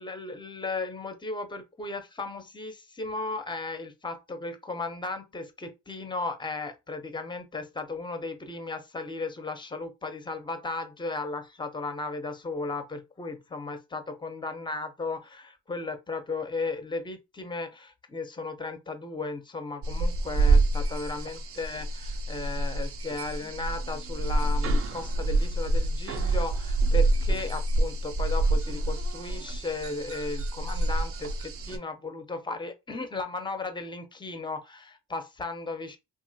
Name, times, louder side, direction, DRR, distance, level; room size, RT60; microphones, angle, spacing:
voice 1, 0.0-36.0, left 3 dB, 15° left, 0.6 m, -35 dB
sound 1, 19.8-31.8, right 2 dB, 50° right, 0.5 m, -27 dB
2.9 x 2.5 x 2.7 m
cardioid pair, 90°, 30 cm